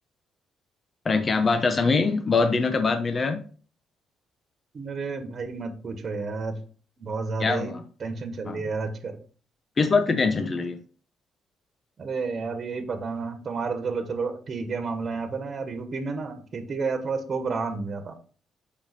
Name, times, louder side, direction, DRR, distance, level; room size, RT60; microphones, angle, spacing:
voice 1, 1.0-3.4 7.4-7.8 8.5-8.6 9.8-10.8, left 4 dB, 35° left, 7 dB, 1.1 m, -23 dB
voice 2, 4.7-6.6 7.0-7.7 8.0-9.2 12.0-18.2, right 4 dB, 45° right, 7 dB, 1.5 m, -31 dB
6.7 x 5.4 x 4.4 m, 0.40 s
cardioid pair, 90°, 0 cm